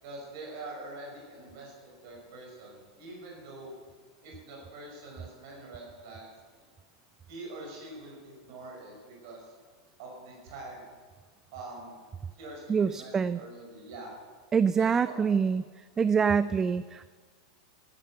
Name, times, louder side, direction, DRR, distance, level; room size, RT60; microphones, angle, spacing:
voice 1, 0.0-3.7 4.2-6.3 7.3-9.5 10.0-10.9 11.5-12.0 12.3-14.1 14.8-15.3, right 2 dB, 55° right, -1 dB, 5.6 m, -44 dB
voice 2, 12.7-13.4 14.5-15.6 16.0-17.1, right 6 dB, 20° right, 15 dB, 0.4 m, -25 dB
15.0 x 11.0 x 7.7 m, 1.5 s
figure-of-eight pair, 95°, 2 cm